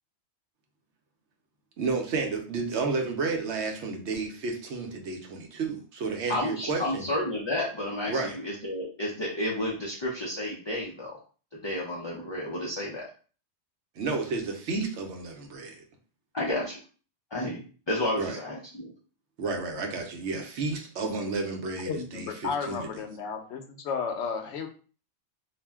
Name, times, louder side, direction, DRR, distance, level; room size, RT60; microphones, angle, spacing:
voice 1, 1.8-7.0 8.1-8.4 14.0-15.8 18.2-18.4 19.4-22.9, right 4 dB, 80° right, 3 dB, 0.9 m, -31 dB
voice 2, 6.3-11.2 11.6-13.0 16.3-16.8 17.3-17.6 17.9-18.9, left 1 dB, 40° left, -5 dB, 0.4 m, -31 dB
voice 3, 21.9-24.7, left 5 dB, 80° left, 5 dB, 0.9 m, -33 dB
2.4 x 2.1 x 3.3 m, 0.39 s
omnidirectional pair, 1.2 m